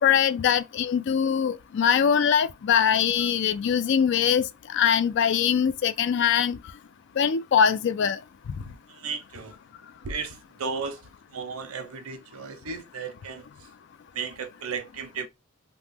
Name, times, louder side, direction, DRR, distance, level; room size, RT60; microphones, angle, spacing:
voice 1, 0.0-6.6 7.2-8.2, left 8 dB, 55° left, 0.3 m, -22 dB
voice 2, 8.7-9.6 10.0-11.0 11.3-13.5 14.1-15.3, right 5 dB, 90° right, 0.6 m, -35 dB
2.9 x 2.1 x 3.4 m
head